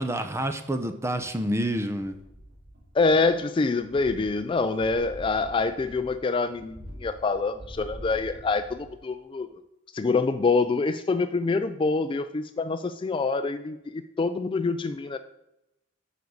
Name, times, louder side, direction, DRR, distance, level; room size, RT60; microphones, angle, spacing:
voice 1, 0.0-2.1, right 1 dB, 15° right, 8 dB, 0.7 m, -28 dB
sound 1, 2.0-3.4 3.7-9.0 9.4-9.5, equal, 60° right, 2.9 m, -45 dB
voice 2, 2.9-9.6 9.9-15.2, left 3 dB, 25° left, 10 dB, 0.3 m, -26 dB
7.1 x 5.2 x 6.3 m, 0.89 s
head